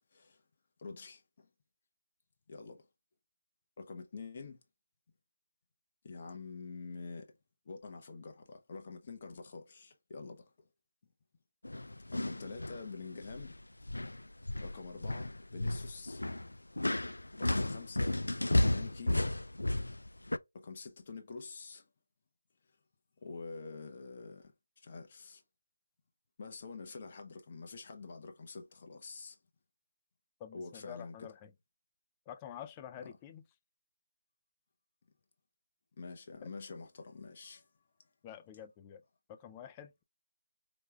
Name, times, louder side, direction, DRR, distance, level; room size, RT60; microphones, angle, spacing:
voice 1, 0.1-0.4 0.8-1.5 2.5-2.8 3.8-4.6 6.0-7.3 7.6-10.5 12.1-13.5 14.6-16.2 17.4-18.2 18.6-19.3 20.5-21.9 23.2-25.4 26.4-29.4 30.5-31.3 33.0-33.1 36.0-37.7, left 4 dB, 35° left, 0.8 m, -46 dB
sound 1, 11.6-12.8 13.2-13.6 13.8-20.4, left 1 dB, 90° left, 0.3 m, -33 dB
voice 2, 30.4-31.5 32.3-33.4 38.2-39.0 39.3-40.0, left 9 dB, 15° left, 0.4 m, -48 dB
5.1 x 2.3 x 3.3 m
figure-of-eight pair, 165°, 0 cm